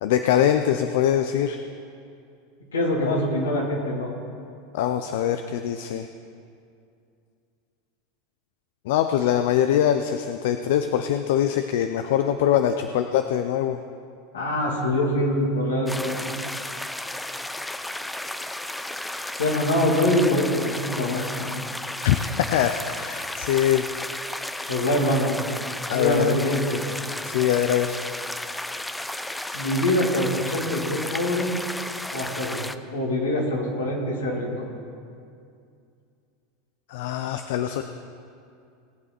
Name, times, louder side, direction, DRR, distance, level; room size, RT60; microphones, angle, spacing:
voice 1, 0.0-1.6 3.0-3.2 4.7-6.1 8.9-13.8 22.0-23.9 25.9-26.4 27.2-28.0 36.9-37.8, left 10 dB, 65° left, 8 dB, 0.5 m, -23 dB
voice 2, 2.7-4.1 14.3-16.3 19.4-21.6 24.7-25.3 25.9-26.8 29.5-31.5 32.1-32.6 32.9-34.7, left 1 dB, 85° left, -2 dB, 2.5 m, -24 dB
sound 1, 15.9-32.8, left 1 dB, 5° left, 0.5 m, -33 dB
18.5 x 8.5 x 4.5 m, 2.4 s
hypercardioid pair, 85°, 0 cm